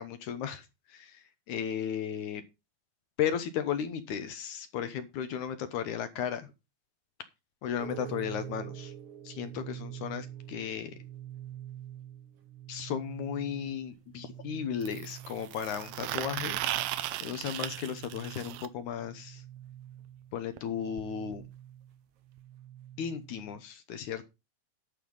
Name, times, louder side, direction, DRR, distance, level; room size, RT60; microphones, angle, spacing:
voice 1, 0.0-2.4 3.2-6.5 7.6-8.9 9.2-10.9 12.7-16.6 17.2-19.4 20.3-21.5 23.0-24.2, left 8 dB, 70° left, 10 dB, 2.1 m, -35 dB
sound 1, 7.8-23.6, right 11 dB, 60° right, 2.4 m, -46 dB
sound 2, 12.8-12.9 14.8-18.7 20.6-20.7 21.0-21.1 21.3-21.5 22.4-22.5, right 14 dB, 80° right, 2.3 m, -36 dB
12.0 x 5.6 x 5.4 m, 0.25 s
omnidirectional pair, 4.1 m